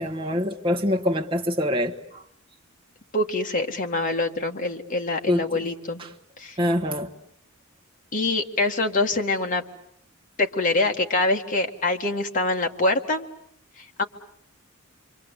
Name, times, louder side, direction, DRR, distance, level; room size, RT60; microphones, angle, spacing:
voice 1, 0.0-1.9 5.3-5.4 6.6-7.1, equal, 25° right, 1.3 m, -24 dB
voice 2, 3.1-6.0 6.4-6.6 8.1-9.6 10.4-13.3 13.8-14.0, left 2 dB, 40° left, 1.9 m, -25 dB
28.0 x 24.0 x 8.2 m
head